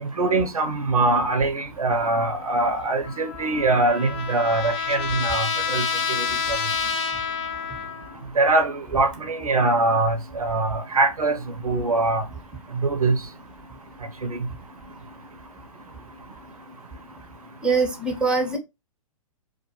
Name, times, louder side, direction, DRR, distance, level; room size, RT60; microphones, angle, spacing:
voice 1, 0.0-5.8 6.2-6.3 8.4-11.4 11.6-12.2 12.8-13.2 14.3-14.4, right 2 dB, 90° right, 0.5 m, -22 dB
Trumpet, 3.0-8.2, left 6 dB, 50° left, 0.7 m, -28 dB
voice 2, 17.6-18.6, right 4 dB, 5° right, 0.5 m, -22 dB
2.2 x 2.2 x 2.8 m
figure-of-eight pair, 115°, 18 cm